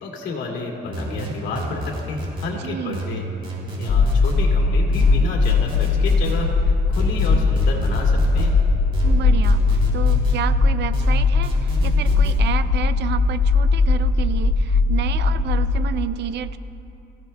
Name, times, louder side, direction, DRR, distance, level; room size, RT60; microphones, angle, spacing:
voice 1, 0.0-3.3 3.8-8.6, left 4 dB, 85° left, -1 dB, 2.4 m, -31 dB
sound 1, 0.9-2.5 2.9-4.4 4.9-6.4 6.9-8.5 8.9-10.4 10.9-12.4, right 1 dB, 30° right, 3.6 m, -31 dB
voice 2, 2.5-3.0 9.0-16.6, right 10 dB, 65° right, 12 dB, 0.6 m, -30 dB
sound 2, 3.9-15.8, left 3 dB, 65° left, 1.9 m, -19 dB
25.0 x 15.5 x 2.3 m, 2.8 s
cardioid pair, 145°, 19 cm